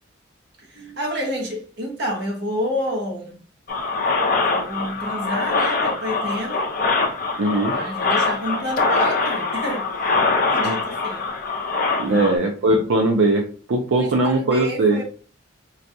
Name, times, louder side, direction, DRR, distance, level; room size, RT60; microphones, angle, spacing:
voice 1, 0.6-3.4 4.4-6.7 7.7-9.9 10.5-11.2 12.0-12.3 13.9-15.0, equal, 55° right, 0.9 m, -29 dB
sound 1, 3.7-12.4, left 3 dB, 45° left, 0.5 m, -23 dB
voice 2, 7.4-7.8 10.6-10.7 12.0-13.4 13.7-15.0, right 2 dB, 75° right, 0.5 m, -19 dB
3.9 x 2.2 x 2.6 m
head